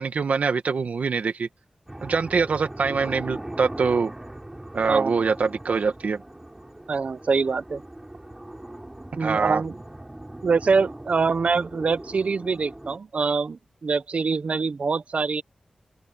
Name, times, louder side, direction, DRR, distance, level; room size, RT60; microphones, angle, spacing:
voice 1, 0.0-1.5 2.0-4.1 4.7-6.2 9.2-9.6, right 5 dB, 85° right, 1.4 m, -24 dB
sound 1, 1.9-13.0, right 1 dB, 15° right, 7.6 m, -40 dB
voice 2, 6.9-7.8 9.2-9.7 10.4-15.4, right 4 dB, 65° right, 0.6 m, -24 dB
open air
wide cardioid pair, 105°, 2 cm